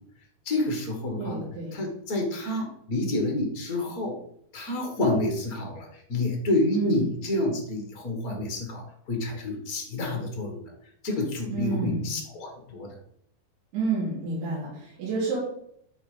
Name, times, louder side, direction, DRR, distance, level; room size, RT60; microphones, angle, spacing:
voice 1, 0.4-1.4 1.7-4.2 4.5-10.7 11.0-13.0, left 2 dB, 75° left, 2 dB, 0.8 m, -28 dB
voice 2, 1.2-1.8 6.7-7.0 11.5-12.1 13.7-15.4, right 4 dB, 80° right, -9 dB, 5.0 m, -30 dB
12.5 x 4.8 x 5.0 m, 0.70 s
omnidirectional pair, 4.7 m